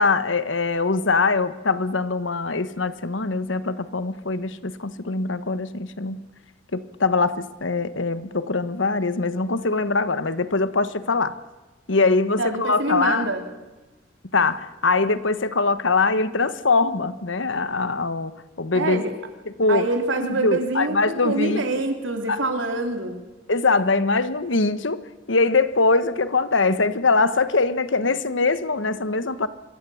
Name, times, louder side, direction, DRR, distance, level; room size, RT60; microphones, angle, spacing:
voice 1, 0.0-6.2 6.7-11.4 11.9-13.3 14.3-19.0 19.4-19.9 20.2-21.8 22.3-22.4 23.5-29.5, left 3 dB, 85° left, 13 dB, 1.3 m, -22 dB
voice 2, 12.4-13.4 18.7-19.1 19.7-23.2, right 2 dB, 90° right, 5 dB, 3.4 m, -25 dB
25.5 x 21.5 x 7.2 m, 1.2 s
head